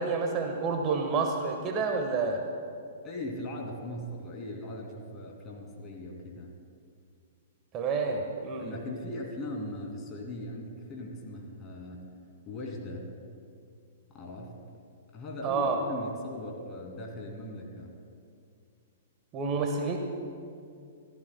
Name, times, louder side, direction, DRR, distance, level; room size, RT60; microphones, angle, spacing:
voice 1, 0.0-2.4 7.7-8.7 15.4-15.8 19.3-20.0, right 4 dB, 30° right, 3 dB, 1.2 m, -29 dB
voice 2, 3.0-6.5 8.6-12.2 12.5-13.1 14.1-14.6 15.1-18.0, left 1 dB, 25° left, 0 dB, 2.5 m, -39 dB
27.5 x 14.5 x 2.2 m, 2.4 s
figure-of-eight pair, 110°, 0 cm